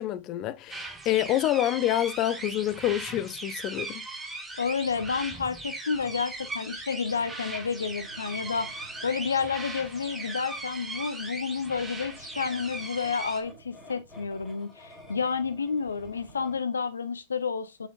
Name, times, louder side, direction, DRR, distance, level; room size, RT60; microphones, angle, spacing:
voice 1, 0.0-4.0, left 13 dB, 40° left, 0.7 m, -27 dB
sound 1, 0.7-13.4, right 2 dB, 10° right, 2.0 m, -39 dB
voice 2, 4.6-17.9, left 5 dB, 80° left, 1.0 m, -30 dB
sound 2, 6.9-16.6, equal, 10° left, 4.5 m, -52 dB
7.1 x 5.6 x 2.4 m
figure-of-eight pair, 100°, 0 cm